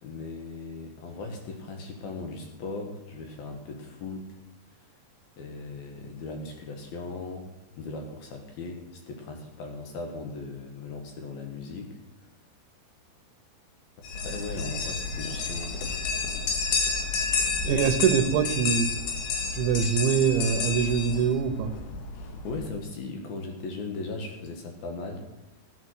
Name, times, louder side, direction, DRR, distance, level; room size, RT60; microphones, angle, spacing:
voice 1, 0.0-4.4 5.4-7.5 7.8-12.0 14.1-16.0 22.4-25.2, left 3 dB, 65° left, 3 dB, 2.8 m, -38 dB
sound 1, 14.0-22.7, left 4 dB, 80° left, 3.7 m, -30 dB
voice 2, 17.6-18.9 19.5-21.8, right 7 dB, 80° right, 9 dB, 3.1 m, -24 dB
15.0 x 9.2 x 6.4 m, 0.99 s
omnidirectional pair, 5.4 m